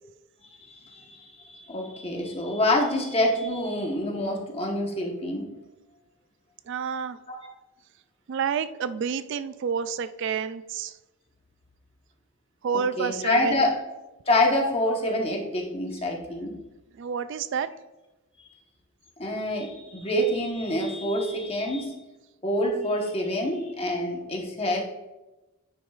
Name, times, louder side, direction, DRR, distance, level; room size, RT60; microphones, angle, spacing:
voice 1, 0.7-5.5 7.3-7.5 13.0-13.8 14.3-16.6 19.2-22.0 22.4-24.8, left 1 dB, 25° left, 1 dB, 1.1 m, -26 dB
voice 2, 6.7-7.2 8.3-11.0 12.6-13.7 17.0-17.7, right 6 dB, 55° right, 13 dB, 0.3 m, -29 dB
9.9 x 6.2 x 2.4 m, 1.0 s
head